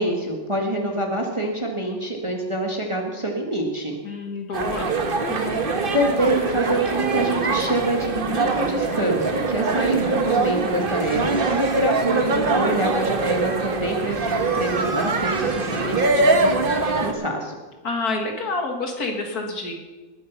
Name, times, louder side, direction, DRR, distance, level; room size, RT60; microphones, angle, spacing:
voice 1, 0.0-4.0 5.9-17.6, right 1 dB, 15° right, 2 dB, 1.5 m, -26 dB
voice 2, 4.0-4.9 5.3-5.6 17.8-19.8, left 3 dB, 55° left, 3 dB, 2.0 m, -28 dB
sound 1, 4.5-17.1, right 3 dB, 35° right, 1.1 m, -23 dB
20.0 x 8.1 x 5.7 m, 1.2 s
omnidirectional pair, 2.1 m